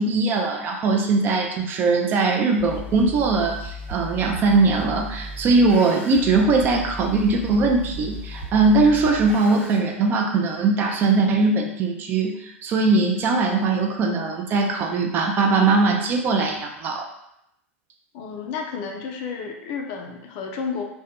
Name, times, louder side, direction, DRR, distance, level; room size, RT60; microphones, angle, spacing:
voice 1, 0.0-17.1, right 3 dB, 30° right, 2 dB, 0.3 m, -20 dB
sound 1, 2.6-9.8, right 1 dB, 50° right, 1.1 m, -36 dB
voice 2, 18.1-20.8, left 5 dB, 40° left, 2 dB, 0.4 m, -31 dB
2.1 x 2.1 x 2.8 m, 0.80 s
figure-of-eight pair, 90°, 7 cm